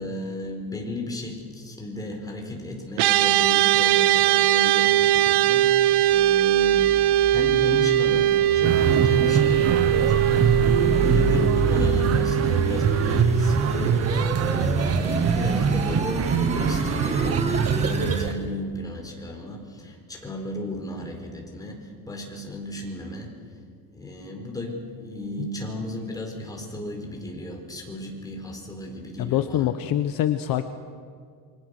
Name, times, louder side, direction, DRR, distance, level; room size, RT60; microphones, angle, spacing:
voice 1, 0.0-7.0 7.3-14.2 14.5-23.3 23.9-29.7, left 1 dB, 10° left, 0 dB, 4.5 m, -34 dB
sound 1, 3.0-14.4, right 12 dB, 60° right, 0.9 m, -21 dB
sound 2, 6.1-18.3, right 2 dB, 15° right, 1.8 m, -30 dB
sound 3, 8.6-18.3, right 6 dB, 35° right, 1.2 m, -24 dB
voice 2, 29.2-30.7, left 12 dB, 50° left, 9 dB, 1.0 m, -25 dB
28.0 x 24.0 x 6.7 m, 2.1 s
cardioid pair, 155°, 45 cm